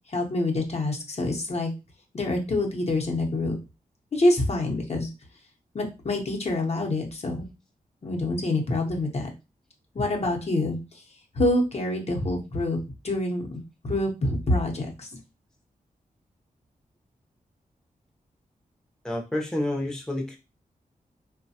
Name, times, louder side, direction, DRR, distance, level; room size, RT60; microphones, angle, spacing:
voice 1, 0.1-1.7 2.1-3.6 4.1-5.1 5.7-7.4 8.0-9.3 9.9-10.8 11.3-12.8 13.0-13.6 13.8-15.1, left 2 dB, 45° left, 0 dB, 0.8 m, -26 dB
voice 2, 19.0-20.4, left 1 dB, 5° left, 0 dB, 0.6 m, -29 dB
3.0 x 2.2 x 2.7 m, 0.28 s
cardioid pair, 65°, 15 cm